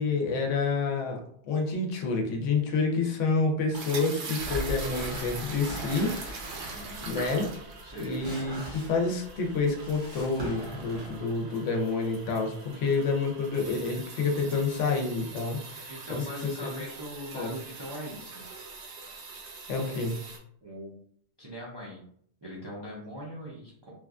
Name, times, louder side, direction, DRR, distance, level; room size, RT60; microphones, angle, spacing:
voice 1, 0.0-6.1 7.1-7.5 8.0-16.7 17.3-17.5 19.7-20.2, left 4 dB, 90° left, 2 dB, 1.0 m, -28 dB
sound 1, 3.7-20.4, right 4 dB, 70° right, 0.9 m, -42 dB
sound 2, 4.4-11.2, equal, 85° right, 1.2 m, -41 dB
voice 2, 6.7-7.1 7.8-8.3 12.8-12.9 15.9-18.4 20.6-20.9 21.4-22.0 22.4-23.9, equal, 40° right, -5 dB, 0.3 m, -41 dB
3.0 x 2.2 x 2.4 m, 0.65 s
omnidirectional pair, 1.2 m